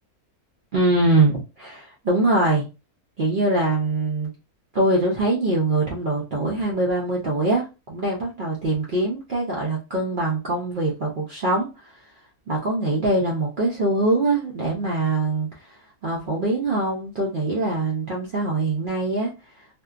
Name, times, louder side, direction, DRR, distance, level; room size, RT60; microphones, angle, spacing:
voice 1, 0.7-2.7 3.2-4.3 4.7-11.9 12.5-15.8 16.0-19.3, right 2 dB, 65° right, -3 dB, 0.5 m, -23 dB
2.6 x 2.2 x 2.3 m, 0.29 s
omnidirectional pair, 1.5 m